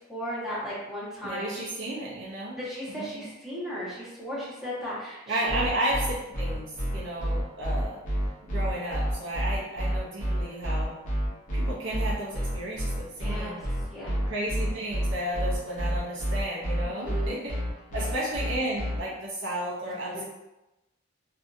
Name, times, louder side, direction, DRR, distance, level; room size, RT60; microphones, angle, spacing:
voice 1, 0.1-1.6 2.6-5.6 13.2-13.6 13.9-14.2 16.8-17.4, equal, ahead, -12 dB, 1.2 m, -36 dB
voice 2, 1.2-2.6 2.9-3.3 5.3-8.0 8.4-11.0 11.5-13.6 14.2-17.6 17.9-20.2, right 1 dB, 60° right, -5 dB, 0.6 m, -33 dB
sound 1, 5.5-19.0, equal, 35° left, 0.7 m, -28 dB
2.7 x 2.5 x 2.5 m, 0.99 s
head